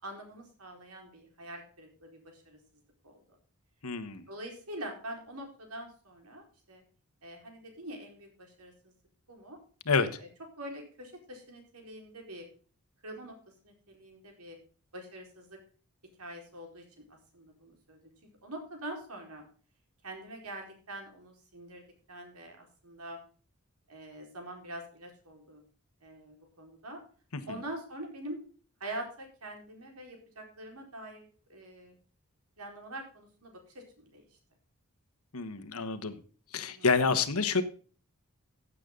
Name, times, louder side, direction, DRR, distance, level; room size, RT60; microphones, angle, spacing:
voice 1, 0.0-2.6 3.0-3.4 4.3-6.8 7.2-8.9 9.3-9.6 10.2-10.3 10.6-12.5 13.0-13.4 13.6-14.6 14.9-15.6 16.2-18.0 18.4-19.4 20.0-23.2 23.9-25.6 26.0-27.0 27.5-28.4 28.8-32.0 32.6-34.3 36.6-36.9, right 1 dB, 85° right, 2 dB, 4.5 m, -44 dB
voice 2, 3.8-4.2 9.9-10.2 27.5-27.6 35.3-36.2 36.5-37.6, left 4 dB, 75° left, 10 dB, 1.4 m, -28 dB
15.0 x 8.4 x 3.8 m, 0.39 s
head